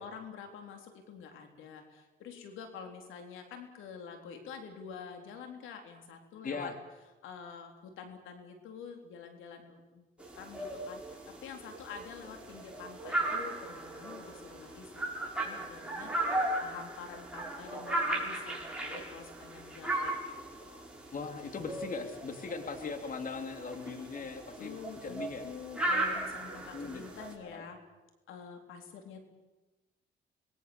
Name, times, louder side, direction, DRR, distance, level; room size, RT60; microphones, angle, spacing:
voice 1, 0.0-6.7 7.2-10.1 10.4-20.8 24.6-27.8 28.3-29.2, left 6 dB, 90° left, 5 dB, 3.8 m, -47 dB
voice 2, 6.4-6.7 21.1-25.4 26.7-27.1 27.4-27.6, left 4 dB, 45° left, 6 dB, 3.0 m, -39 dB
sound 1, 10.2-27.3, right 1 dB, 5° right, 7.2 m, -37 dB
26.0 x 21.5 x 7.1 m, 1.1 s
cardioid pair, 90°, 20 cm